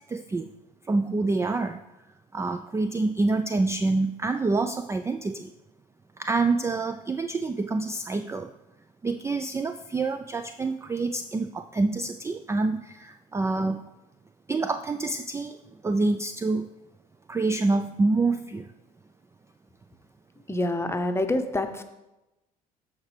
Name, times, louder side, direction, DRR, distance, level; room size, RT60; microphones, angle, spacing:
voice 1, 0.1-0.5 0.8-1.8 2.3-5.5 6.2-8.5 9.0-13.8 14.5-15.6 15.8-16.7 17.3-18.7, right 3 dB, 15° right, 9 dB, 0.4 m, -27 dB
voice 2, 20.5-21.8, left 1 dB, 15° left, 7 dB, 0.9 m, -26 dB
13.5 x 4.6 x 3.3 m, 0.99 s
hypercardioid pair, 60°, 20 cm